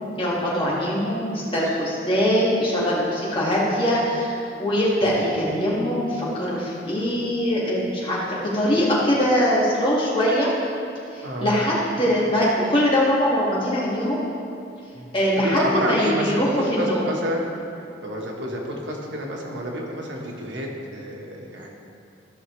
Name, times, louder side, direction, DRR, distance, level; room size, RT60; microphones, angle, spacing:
voice 1, 0.2-4.3 4.6-10.5 11.1-14.2 15.1-17.0, equal, 30° left, -7 dB, 1.9 m, -22 dB
voice 2, 11.2-11.6 14.9-15.1 15.4-17.4 18.0-21.7, equal, 85° right, -1 dB, 1.3 m, -29 dB
13.5 x 6.0 x 3.2 m, 2.5 s
head